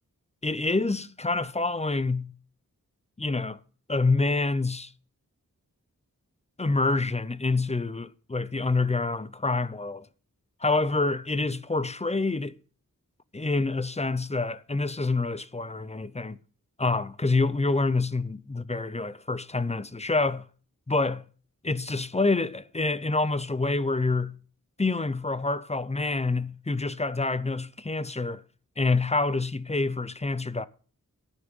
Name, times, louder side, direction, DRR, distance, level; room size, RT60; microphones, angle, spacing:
voice 1, 0.4-2.3 3.2-3.6 3.9-4.9 6.6-10.1 10.6-12.5 13.3-16.4 16.8-20.5 20.9-21.2 21.6-24.4 24.8-28.4 28.8-30.7, left 3 dB, 20° left, 0.5 m, -27 dB
13.0 x 5.9 x 5.3 m
wide cardioid pair, 65°, 34 cm